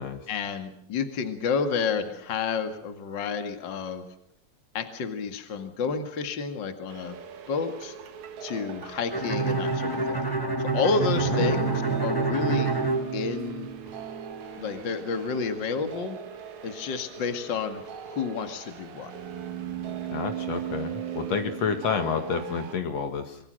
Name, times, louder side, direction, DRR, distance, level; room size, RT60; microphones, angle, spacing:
voice 1, 0.3-4.1 4.7-7.2 7.5-8.0 8.4-10.2 10.6-12.7 13.1-13.7 14.6-16.2 16.6-19.1, left 5 dB, 40° left, 7 dB, 2.4 m, -30 dB
sound 1, 6.9-22.7, right 8 dB, 70° right, 3.1 m, -39 dB
Bowed string instrument, 9.1-13.9, right 3 dB, 10° left, 1.8 m, -27 dB
voice 2, 11.3-11.6 20.1-23.4, left 6 dB, 65° left, 7 dB, 2.8 m, -29 dB
26.0 x 23.0 x 6.5 m, 0.71 s
omnidirectional pair, 3.4 m